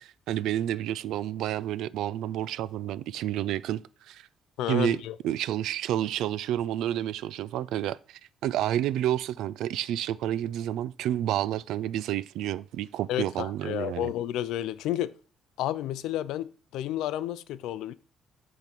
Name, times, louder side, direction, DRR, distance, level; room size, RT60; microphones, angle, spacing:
voice 1, 0.0-4.3 4.7-14.1, right 12 dB, 65° right, 0.3 m, -30 dB
voice 2, 4.6-5.2 13.1-15.1 15.6-17.9, left 12 dB, 75° left, 0.5 m, -31 dB
8.8 x 3.8 x 6.0 m
cardioid pair, 175°, 0 cm